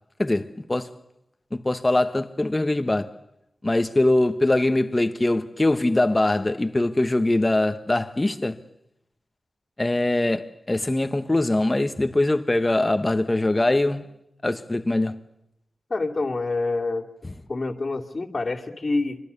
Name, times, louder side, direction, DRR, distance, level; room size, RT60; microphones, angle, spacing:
voice 1, 0.2-0.9 1.5-3.1 3.6-8.6 9.8-14.1 14.4-15.2, left 2 dB, 20° left, 1.4 m, -22 dB
voice 2, 15.9-17.1 17.5-19.2, left 3 dB, 35° left, 2.6 m, -27 dB
26.0 x 25.0 x 7.0 m
wide cardioid pair, 105°, 0 cm